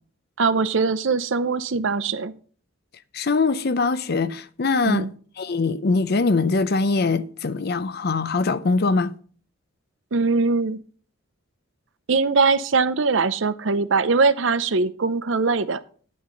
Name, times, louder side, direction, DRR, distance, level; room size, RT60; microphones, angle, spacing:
voice 1, 0.4-2.3 4.9-5.1 10.1-10.8 12.1-15.8, right 4 dB, 65° right, 0.6 m, -21 dB
voice 2, 3.1-5.1 5.4-9.1, left 3 dB, 50° left, 0.6 m, -22 dB
9.4 x 8.6 x 3.8 m
head